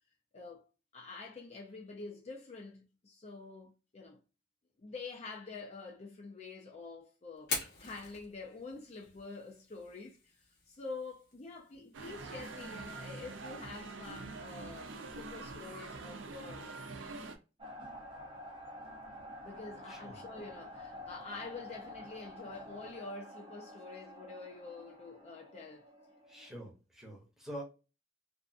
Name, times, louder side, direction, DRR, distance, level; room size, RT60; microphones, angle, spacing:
voice 1, 0.3-0.7 0.9-4.2 4.8-10.3 10.7-16.7 19.4-25.9, left 3 dB, 35° left, 0.5 m, -47 dB
Fire, 7.4-15.3, left 4 dB, 60° left, 1.0 m, -46 dB
sound 1, 11.9-17.4, right 3 dB, 85° right, 0.5 m, -45 dB
sound 2, 17.6-26.7, left 1 dB, 30° right, 0.6 m, -49 dB
voice 2, 26.3-27.6, right 1 dB, ahead, 0.8 m, -46 dB
2.6 x 2.5 x 2.3 m
head